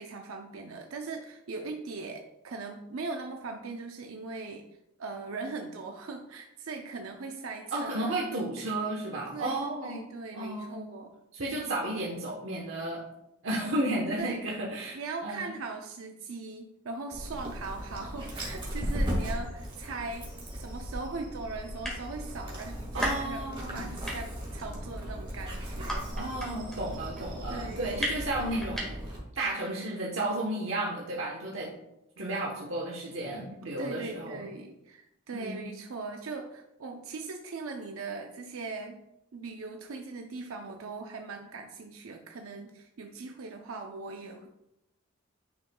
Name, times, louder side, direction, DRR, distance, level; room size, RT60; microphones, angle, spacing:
voice 1, 0.0-4.7 5.0-8.5 9.3-9.6 9.8-11.1 14.2-14.4 14.9-26.1 27.5-27.8 33.8-39.0 39.3-44.5, right 3 dB, 90° right, 3 dB, 0.6 m, -40 dB
voice 2, 7.7-10.0 10.3-10.8 11.3-13.0 13.4-15.5 22.9-23.9 26.2-29.0 29.3-31.7 32.2-34.5 35.3-35.7, right 1 dB, 70° right, -3 dB, 1.1 m, -33 dB
Dog, 17.1-29.2, equal, 25° right, 1.8 m, -37 dB
sound 1, 21.8-22.3 22.7-23.8 24.1-29.2, equal, 5° left, 1.7 m, -35 dB
9.4 x 5.3 x 2.3 m, 0.88 s
head